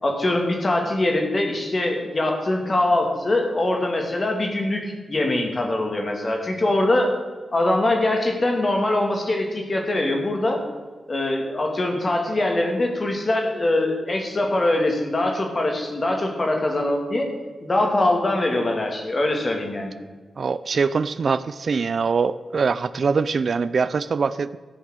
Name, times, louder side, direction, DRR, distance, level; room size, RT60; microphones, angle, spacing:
voice 1, 0.0-7.1 7.5-10.6 11.1-17.3 17.6-19.9, left 1 dB, 40° left, 2 dB, 2.4 m, -23 dB
voice 2, 20.4-24.6, right 5 dB, 60° right, 15 dB, 0.4 m, -23 dB
15.0 x 5.5 x 6.5 m, 1.4 s
cardioid pair, 65°, 0 cm